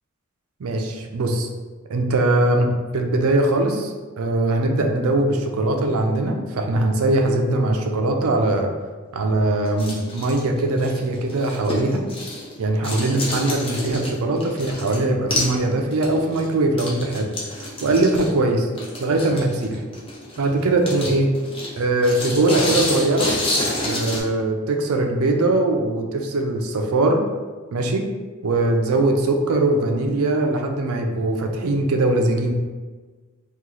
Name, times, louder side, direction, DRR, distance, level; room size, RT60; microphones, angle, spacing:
voice 1, 0.6-1.5 1.9-2.7 2.9-8.7 9.1-12.0 12.6-18.7 19.0-19.8 20.4-21.3 21.8-23.3 23.8-27.2 27.7-28.0 28.4-32.5, right 2 dB, 90° right, 3 dB, 0.5 m, -21 dB
sound 1, 9.6-12.6 12.8-15.0 15.3-15.6 15.9-24.2, left 1 dB, 25° left, 0.6 m, -28 dB
3.0 x 2.4 x 3.7 m, 1.4 s
head